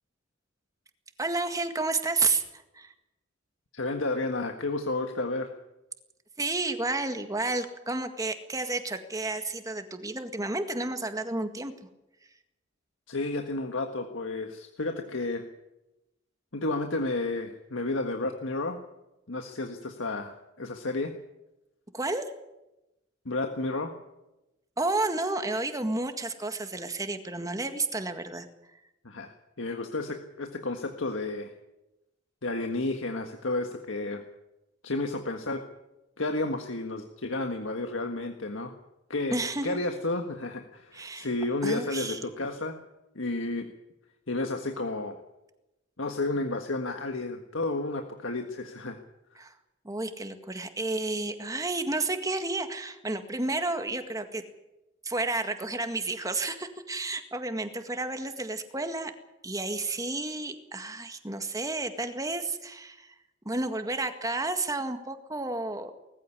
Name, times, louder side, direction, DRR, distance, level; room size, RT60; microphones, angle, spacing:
voice 1, 1.2-2.4 2.7-2.9 6.4-11.7 21.9-22.3 24.8-28.5 39.3-39.8 40.9-41.3 41.6-42.2 49.4-49.5 49.8-54.4 55.0-59.1 59.4-63.1 63.5-65.9, right 2 dB, 20° right, 7 dB, 1.9 m, -31 dB
voice 2, 3.7-5.5 13.1-15.4 16.5-18.8 19.3-21.1 23.2-23.9 29.0-31.5 32.4-34.2 34.8-35.6 36.2-38.7 39.1-42.8 43.1-43.7 44.3-45.2 46.0-49.0, left 2 dB, 90° left, 5 dB, 1.6 m, -31 dB
20.0 x 15.0 x 9.9 m, 0.95 s
head